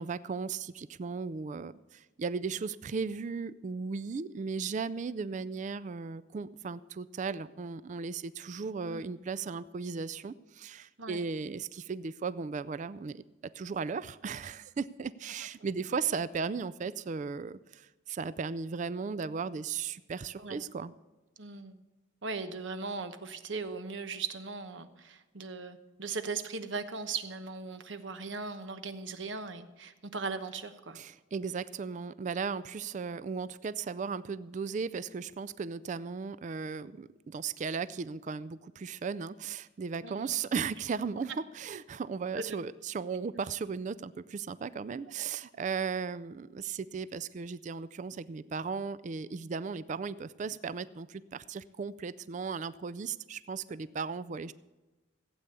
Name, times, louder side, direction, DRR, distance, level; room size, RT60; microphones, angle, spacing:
voice 1, 0.0-20.9 30.9-54.5, right 5 dB, 40° right, 17 dB, 0.3 m, -36 dB
voice 2, 21.4-21.8 22.2-31.0 40.0-40.3 42.3-42.6 45.2-45.3 53.7-53.8, right 4 dB, 75° right, 10 dB, 1.0 m, -38 dB
15.5 x 8.5 x 6.8 m, 1.1 s
head